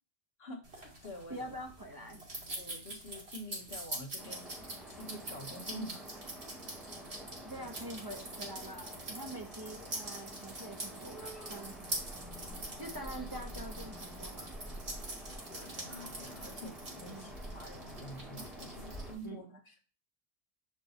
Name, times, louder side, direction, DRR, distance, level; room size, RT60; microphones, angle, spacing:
voice 1, 0.4-1.6 2.6-4.5 4.9-6.1 6.8-7.2 7.6-7.7 15.3-19.8, equal, 70° left, 2 dB, 1.7 m, -48 dB
sound 1, 0.6-19.3, right 2 dB, 75° right, 2.5 m, -45 dB
voice 2, 1.3-2.2 7.4-11.7 12.8-14.5 17.1-17.3 19.2-19.6, right 1 dB, 25° right, 2 dB, 0.7 m, -45 dB
sound 2, 4.2-19.1, right 1 dB, ahead, 2.7 m, -48 dB
6.8 x 6.2 x 2.8 m, 0.36 s
omnidirectional pair, 1.1 m